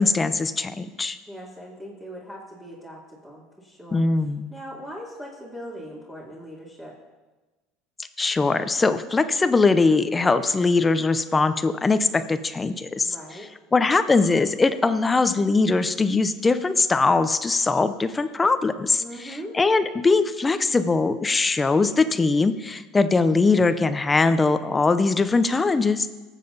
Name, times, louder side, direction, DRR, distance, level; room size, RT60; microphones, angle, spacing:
voice 1, 0.0-1.2 3.9-4.5 8.2-13.1 13.7-26.1, left 3 dB, 20° left, 11 dB, 0.7 m, -21 dB
voice 2, 1.3-4.0 4.5-7.0 13.0-13.5 19.0-19.6, equal, 10° right, -6 dB, 2.7 m, -40 dB
19.0 x 7.4 x 4.0 m, 1.2 s
supercardioid pair, 100°, 0 cm